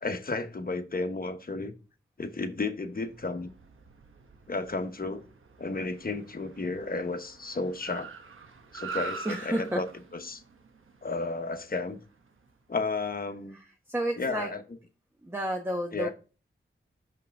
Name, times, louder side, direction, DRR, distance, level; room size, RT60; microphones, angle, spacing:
voice 1, 0.0-1.7 2.2-3.5 4.5-5.2 5.6-8.1 8.7-9.8 10.2-10.4 11.0-12.0 12.7-13.6 14.2-14.6 15.9-16.1, left 3 dB, 45° left, 1.1 m, -32 dB
Car, 3.0-12.5, right 5 dB, 75° right, 1.0 m, -45 dB
voice 2, 9.2-9.8 13.5-14.5 15.2-16.1, right 1 dB, 10° right, 1.0 m, -31 dB
6.3 x 5.7 x 3.5 m
wide cardioid pair, 60°, 21 cm